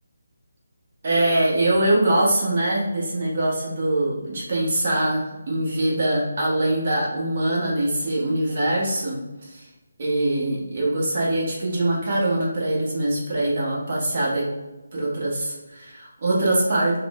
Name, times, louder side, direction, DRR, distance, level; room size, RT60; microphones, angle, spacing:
voice 1, 1.0-9.7 10.0-14.4 14.9-17.0, right 1 dB, 45° right, -5 dB, 1.1 m, -23 dB
3.5 x 2.1 x 2.4 m, 1.1 s
figure-of-eight pair, 155°, 0 cm